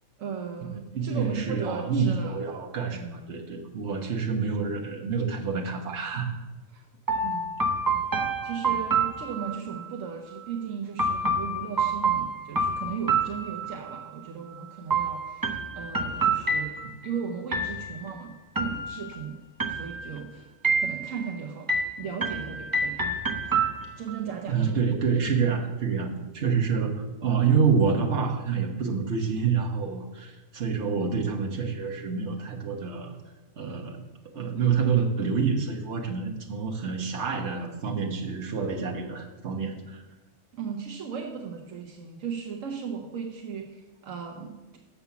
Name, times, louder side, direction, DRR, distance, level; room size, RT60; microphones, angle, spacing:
voice 1, 0.2-2.4 2.9-3.3 6.7-6.9 7.2-7.5 8.4-16.7 17.0-19.4 19.7-20.5 20.8-21.7 22.0-23.0 23.4-23.5 24.0-24.7 40.5-44.8, right 6 dB, 80° right, 1 dB, 1.2 m, -36 dB
voice 2, 0.9-6.3 24.5-33.1 33.6-34.0 34.3-40.0, right 6 dB, 60° right, 1 dB, 1.4 m, -27 dB
sound 1, 7.1-9.8 11.0-14.0 14.9-17.1 17.5-18.1 18.6-19.2 19.6-20.2 20.6-21.3 21.7-24.2, right 3 dB, 25° right, 0.5 m, -28 dB
7.0 x 5.8 x 7.0 m, 1.1 s
omnidirectional pair, 1.3 m